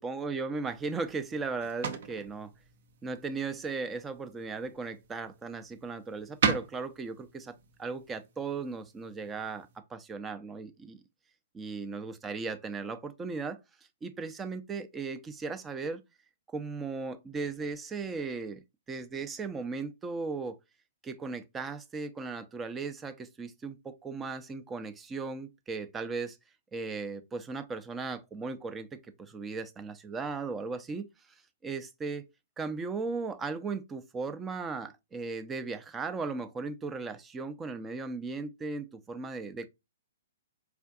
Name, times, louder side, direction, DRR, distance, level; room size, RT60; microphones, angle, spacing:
voice 1, 0.0-2.5 3.0-11.0 11.5-13.6 14.0-16.0 16.5-20.6 21.0-26.4 26.7-31.0 31.6-32.3 32.6-39.7, right 4 dB, 15° right, 0.5 m, -37 dB
sound 1, 0.6-9.8, right 6 dB, 55° right, 0.6 m, -38 dB
4.6 x 2.5 x 2.4 m
figure-of-eight pair, 120°, 0 cm